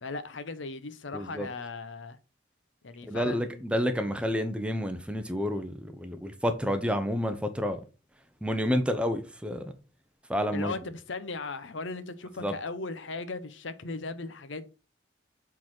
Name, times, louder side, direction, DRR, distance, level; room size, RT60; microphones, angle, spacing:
voice 1, 0.0-2.2 2.8-3.6 10.5-14.7, left 3 dB, 70° left, 0.8 m, -37 dB
voice 2, 1.1-1.5 3.1-7.8 8.4-9.7 10.3-10.7 12.4-12.5, equal, 5° right, 0.8 m, -29 dB
7.4 x 4.0 x 4.4 m
head